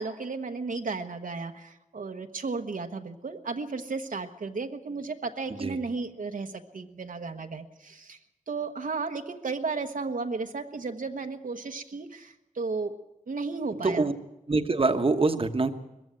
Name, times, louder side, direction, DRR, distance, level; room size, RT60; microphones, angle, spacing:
voice 1, 0.0-8.2 8.5-13.0 13.3-14.1, right 4 dB, 70° right, 5 dB, 1.1 m, -34 dB
voice 2, 14.5-15.7, right 3 dB, 40° right, 7 dB, 1.1 m, -24 dB
21.0 x 15.0 x 9.0 m, 0.93 s
wide cardioid pair, 85°, 14 cm